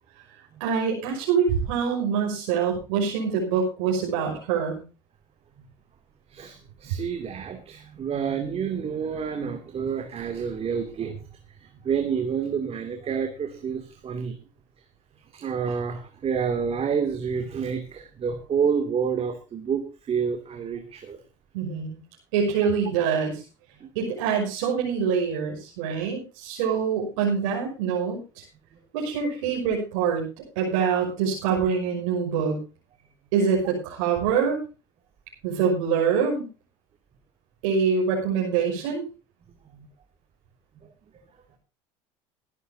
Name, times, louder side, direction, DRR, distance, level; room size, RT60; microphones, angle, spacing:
voice 1, 0.6-4.8 21.5-22.0 22.3-23.4 23.9-28.4 28.9-30.2 30.6-32.6 33.3-34.6 35.4-36.4 37.6-39.0, right 6 dB, 80° right, -2 dB, 5.9 m, -25 dB
voice 2, 6.3-11.2 11.6-14.4 15.3-21.2 23.8-23.9 39.7-39.9, right 6 dB, 40° right, 5 dB, 2.7 m, -29 dB
22.0 x 11.0 x 2.8 m, 0.32 s
supercardioid pair, 85°, 16 cm